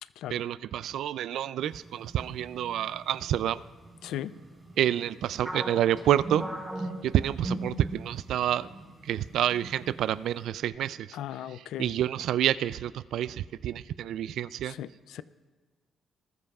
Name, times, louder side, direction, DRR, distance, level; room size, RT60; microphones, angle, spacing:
voice 1, 0.3-3.6 4.8-6.4 7.0-8.7 9.0-11.1 11.8-14.7, right 11 dB, 75° right, 17 dB, 0.3 m, -28 dB
sound 1, 1.6-10.5, right 2 dB, 35° right, 3.8 m, -52 dB
sound 2, 5.4-8.3 8.6-8.8 9.5-9.9, right 1 dB, 5° right, 4.8 m, -36 dB
voice 2, 11.1-11.9 14.6-15.2, left 11 dB, 85° left, 16 dB, 0.4 m, -37 dB
20.0 x 14.0 x 2.4 m, 1.4 s
cardioid pair, 90°, 0 cm